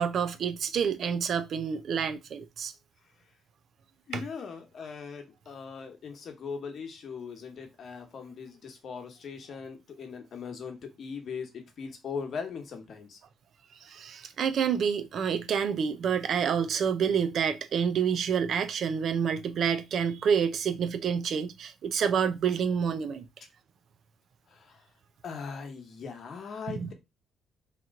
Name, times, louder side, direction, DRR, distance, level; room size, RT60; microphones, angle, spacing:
voice 1, 0.0-2.7 4.1-4.2 13.8-23.3 26.7-26.9, right 7 dB, 65° right, 0.5 m, -28 dB
voice 2, 4.1-13.2 24.5-24.9 25.2-26.9, left 5 dB, 55° left, 1.0 m, -40 dB
3.0 x 2.9 x 3.6 m
cardioid pair, 90°, 0 cm